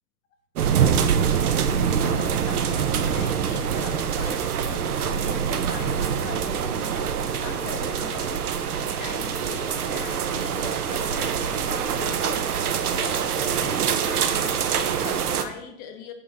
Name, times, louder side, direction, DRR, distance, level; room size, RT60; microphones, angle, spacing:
sound 1, 0.6-15.4, right 7 dB, 65° right, 0.8 m, -25 dB
voice 1, 1.7-8.5 9.0-12.6 12.9-16.1, left 7 dB, 20° left, 6 dB, 0.6 m, -39 dB
5.8 x 5.5 x 4.1 m, 0.76 s
hypercardioid pair, 115°, 48 cm